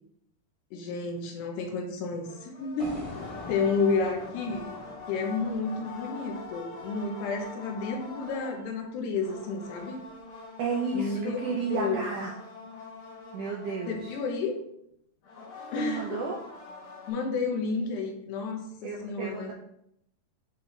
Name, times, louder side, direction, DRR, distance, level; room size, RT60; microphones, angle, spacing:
voice 1, 0.7-4.8 5.1-10.0 10.9-12.1 13.9-14.6 15.7-16.2 17.1-19.5, left 4 dB, 85° left, 2 dB, 3.1 m, -31 dB
sound 1, 2.2-8.7 9.1-14.6 15.2-17.1, left 4 dB, 65° left, 4.5 m, -44 dB
sound 2, 2.8-6.9, left 2 dB, 25° left, 1.4 m, -45 dB
voice 2, 10.6-12.3 13.3-14.1 15.7-16.4 18.8-19.5, right 4 dB, 80° right, -2 dB, 1.8 m, -32 dB
10.0 x 4.1 x 3.3 m, 0.75 s
omnidirectional pair, 4.7 m